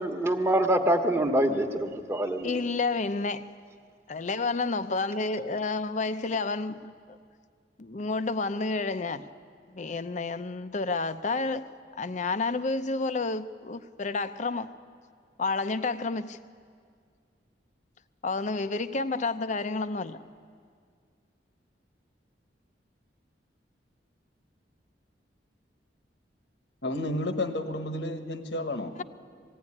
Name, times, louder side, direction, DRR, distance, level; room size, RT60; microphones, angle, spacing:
voice 1, 0.0-2.6, right 1 dB, 15° right, 4 dB, 1.3 m, -25 dB
voice 2, 2.4-3.5 4.1-7.2 7.8-9.2 9.7-11.7 12.0-14.7 15.4-16.4 18.2-20.2 29.0-29.1, left 3 dB, 45° left, 12 dB, 0.6 m, -30 dB
voice 3, 26.8-28.9, left 1 dB, 70° left, 8 dB, 1.3 m, -31 dB
21.0 x 16.0 x 9.8 m, 2.1 s
head